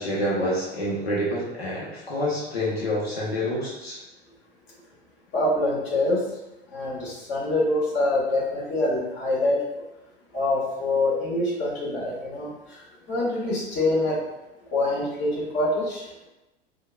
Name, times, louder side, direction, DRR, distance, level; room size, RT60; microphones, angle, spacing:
voice 1, 0.0-4.0, equal, 80° left, -6 dB, 0.8 m, -27 dB
voice 2, 5.3-6.2 6.7-9.6 10.3-14.2 14.7-16.1, left 2 dB, 40° left, -5 dB, 1.4 m, -25 dB
4.5 x 2.3 x 2.2 m, 0.97 s
figure-of-eight pair, 80°, 30 cm